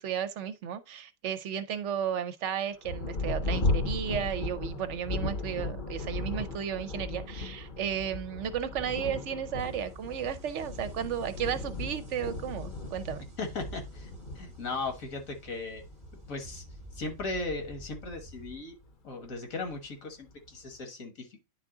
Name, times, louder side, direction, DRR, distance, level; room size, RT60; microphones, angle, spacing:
voice 1, 0.0-13.2, right 8 dB, 65° right, 0.9 m, -34 dB
Thunder, 2.8-18.9 19.7-19.8 20.3-20.8, left 2 dB, 45° left, 0.9 m, -36 dB
sound 1, 9.6-18.6, right 2 dB, 30° right, 1.0 m, -52 dB
voice 2, 13.4-14.1 14.4-15.8 16.3-16.6 16.9-18.8 19.0-21.3, left 3 dB, 80° left, 1.8 m, -37 dB
9.7 x 3.6 x 3.7 m
omnidirectional pair, 1.4 m